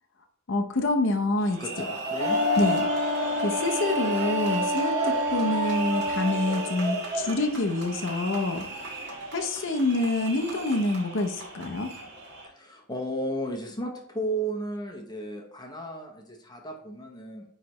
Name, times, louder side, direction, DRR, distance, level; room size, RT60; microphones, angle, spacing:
voice 1, 0.5-1.6 2.6-3.1 3.4-8.6 9.3-11.9, left 2 dB, 60° left, 4 dB, 0.7 m, -27 dB
sound 1, 1.4-12.5, equal, 55° right, 1.8 m, -33 dB
voice 2, 1.6-2.4 12.4-17.4, right 1 dB, 20° left, 1 dB, 0.8 m, -34 dB
Wind instrument woodwind instrument, 2.2-6.8, equal, 75° right, 1.5 m, -29 dB
9.5 x 3.3 x 3.0 m, 0.71 s
head